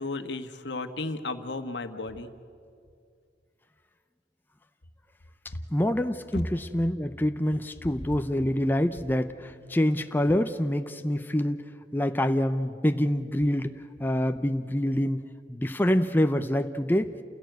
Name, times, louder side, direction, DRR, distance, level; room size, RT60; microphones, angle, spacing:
voice 1, 0.0-2.3, left 3 dB, 85° left, 8 dB, 1.3 m, -34 dB
voice 2, 5.7-15.2 15.5-17.1, left 1 dB, 10° left, 8 dB, 0.6 m, -26 dB
28.5 x 16.5 x 8.0 m, 2.3 s
head